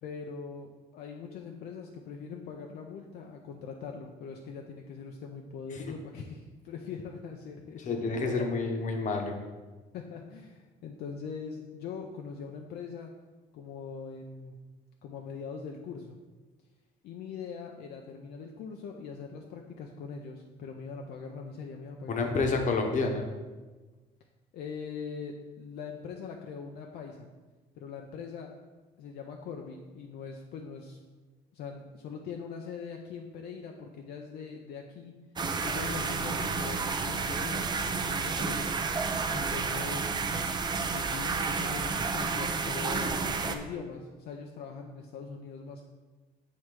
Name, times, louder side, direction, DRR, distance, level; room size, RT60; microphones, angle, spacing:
voice 1, 0.0-8.5 9.9-13.1 13.5-14.6 15.0-16.2 17.0-22.7 24.5-27.3 27.8-28.5 29.0-31.0 31.5-35.1 35.6-37.7 38.1-38.8 39.3-40.2 40.9-45.8, left 5 dB, 70° left, 2 dB, 0.6 m, -42 dB
voice 2, 7.8-9.4 22.1-23.2, left 3 dB, 50° left, 3 dB, 1.0 m, -29 dB
sound 1, 35.4-43.6, right 4 dB, 25° right, 0.5 m, -31 dB
7.6 x 3.1 x 4.7 m, 1.3 s
cardioid pair, 110°, 17 cm